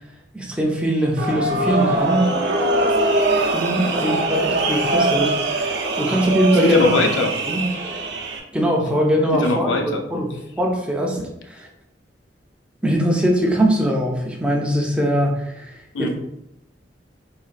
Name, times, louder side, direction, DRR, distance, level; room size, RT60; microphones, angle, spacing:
voice 1, 0.3-2.3 3.1-3.2 3.5-7.0 7.5-7.7 8.5-9.8 10.1-11.7 12.8-16.1, equal, 5° right, -1 dB, 0.5 m, -21 dB
sound 1, 1.2-8.4, right 2 dB, 65° right, 0.5 m, -22 dB
voice 2, 6.6-7.3 9.4-10.0 15.9-16.1, left 2 dB, 85° left, 4 dB, 0.5 m, -20 dB
4.0 x 3.0 x 2.4 m, 0.82 s
head